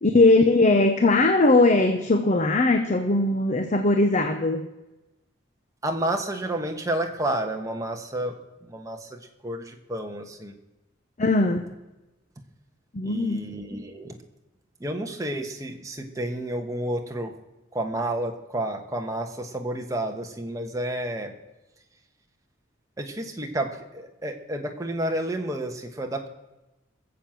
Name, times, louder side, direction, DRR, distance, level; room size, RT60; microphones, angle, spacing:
voice 1, 0.0-4.7 11.2-11.6 12.9-13.5, left 2 dB, 35° left, 7 dB, 0.8 m, -20 dB
voice 2, 5.8-8.4 8.6-10.5 13.0-14.2 14.8-17.3 17.7-21.3 23.0-26.3, right 1 dB, 15° right, 3 dB, 1.3 m, -30 dB
18.5 x 7.5 x 7.7 m, 1.0 s
head